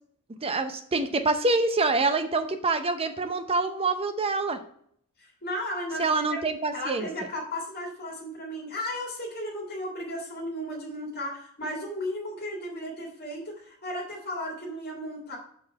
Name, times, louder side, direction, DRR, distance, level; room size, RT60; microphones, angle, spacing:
voice 1, 0.4-4.6 6.0-7.1, right 3 dB, 25° right, 8 dB, 0.6 m, -26 dB
voice 2, 5.2-6.4 6.7-15.4, left 1 dB, 45° left, -3 dB, 1.9 m, -35 dB
6.8 x 3.8 x 4.4 m, 0.65 s
head